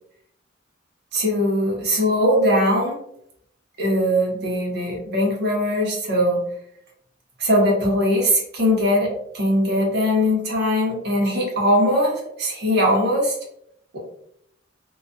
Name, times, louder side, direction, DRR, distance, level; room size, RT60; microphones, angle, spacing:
voice 1, 1.1-3.0 3.8-6.5 7.4-13.4, equal, 55° right, -1 dB, 0.8 m, -20 dB
2.3 x 2.3 x 2.5 m, 0.71 s
head